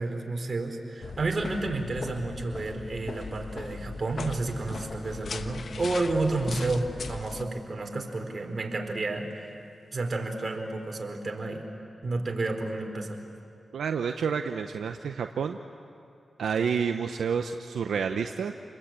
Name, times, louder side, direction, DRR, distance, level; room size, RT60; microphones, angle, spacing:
voice 1, 0.0-9.5 9.9-11.6 12.0-13.2, right 2 dB, 50° right, 3 dB, 4.1 m, -31 dB
sound 1, 1.0-7.4, left 4 dB, 70° left, 1.1 m, -39 dB
voice 2, 13.7-15.6 16.4-18.5, right 6 dB, 90° right, 6 dB, 0.8 m, -29 dB
29.0 x 21.0 x 8.9 m, 2.5 s
cardioid pair, 50°, 0 cm